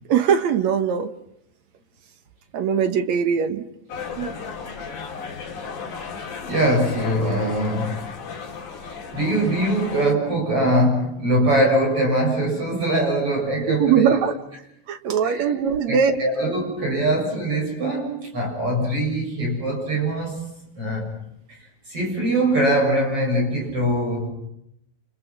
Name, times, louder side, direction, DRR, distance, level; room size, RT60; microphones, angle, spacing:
voice 1, 0.1-1.1 2.5-3.7 4.2-4.3 13.7-14.4 14.9-16.2, right 7 dB, 65° right, 9 dB, 2.5 m, -21 dB
sound 1, 3.9-10.1, left 5 dB, 75° left, 4.4 m, -34 dB
voice 2, 6.0-8.0 8.8-14.2 15.2-15.6 15.9-21.1 21.5-24.3, right 1 dB, 45° right, 1 dB, 8.3 m, -23 dB
29.5 x 29.0 x 6.1 m, 0.76 s
omnidirectional pair, 3.5 m